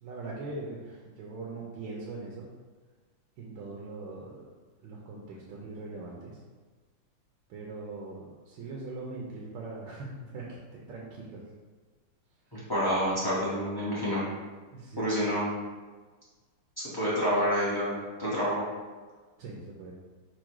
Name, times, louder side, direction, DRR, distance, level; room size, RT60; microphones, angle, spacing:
voice 1, 0.0-2.5 3.4-4.5 4.8-6.4 7.5-11.4 14.7-15.2 19.4-19.9, right 3 dB, 70° right, -3 dB, 1.3 m, -41 dB
voice 2, 12.5-14.2 15.0-15.5 16.8-17.9 18.2-18.6, equal, 25° left, -9 dB, 0.4 m, -28 dB
4.8 x 2.3 x 4.5 m, 1.4 s
omnidirectional pair, 2.4 m